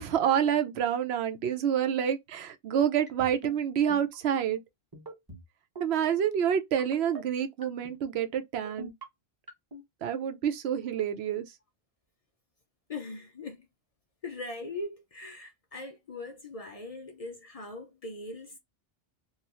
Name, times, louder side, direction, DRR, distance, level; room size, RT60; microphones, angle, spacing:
voice 1, 0.0-4.6 5.8-8.9 10.0-11.5, right 9 dB, 80° right, 0.9 m, -28 dB
sound 1, 3.1-3.5 3.9-4.2 4.9-5.4 5.8-6.0 6.8-7.2 7.6-8.0 8.6-9.0 9.5-9.8, right 2 dB, 25° right, 0.7 m, -43 dB
voice 2, 12.9-13.7 14.2-18.6, left 2 dB, 45° left, 0.5 m, -40 dB
2.5 x 2.4 x 2.9 m
omnidirectional pair, 1.1 m